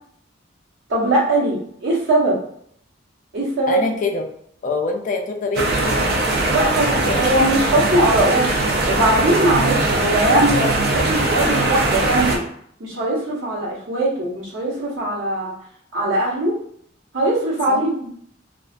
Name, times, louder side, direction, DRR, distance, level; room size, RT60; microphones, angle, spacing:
voice 1, 0.9-2.4 3.3-3.8 6.5-8.6 8.8-12.4 12.8-15.5 15.9-16.5 17.1-18.1, right 1 dB, 75° right, -6 dB, 1.1 m, -20 dB
voice 2, 3.7-4.3 4.6-6.6 6.9-7.5 17.7-17.8, left 3 dB, 45° left, 3 dB, 0.4 m, -25 dB
sound 1, 5.5-12.4, right 2 dB, 55° right, 0.5 m, -20 dB
2.4 x 2.4 x 2.2 m, 0.65 s
head